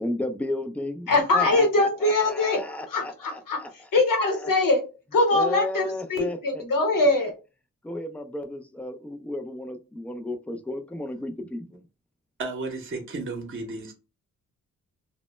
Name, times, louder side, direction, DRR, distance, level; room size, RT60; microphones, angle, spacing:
voice 1, 0.0-3.7 4.4-4.5 5.3-6.4 7.0-7.1 7.8-11.8, left 1 dB, 5° left, 0.3 m, -33 dB
voice 2, 1.1-4.8 5.1-7.3, left 2 dB, 65° left, 1.0 m, -23 dB
voice 3, 12.4-13.9, right 3 dB, 35° right, 0.7 m, -33 dB
2.1 x 2.0 x 3.0 m
cardioid pair, 55°, 35 cm